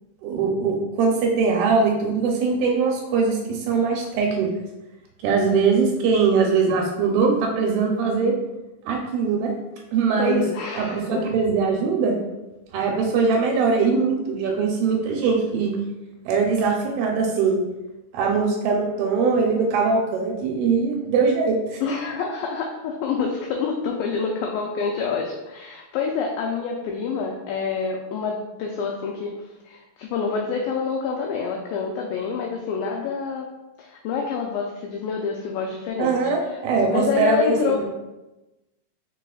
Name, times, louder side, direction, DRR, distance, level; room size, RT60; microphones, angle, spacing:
voice 1, 0.2-4.5 5.2-8.3 8.9-9.5 9.9-10.4 10.7-12.1 12.7-15.7 16.3-17.6 18.1-21.9 36.0-37.7, right 4 dB, 80° right, 1 dB, 2.4 m, -21 dB
voice 2, 10.2-11.2 21.8-33.5 33.8-36.6 36.9-37.9, left 5 dB, 85° left, 0 dB, 2.1 m, -27 dB
4.8 x 4.6 x 2.3 m, 1.0 s
omnidirectional pair, 4.5 m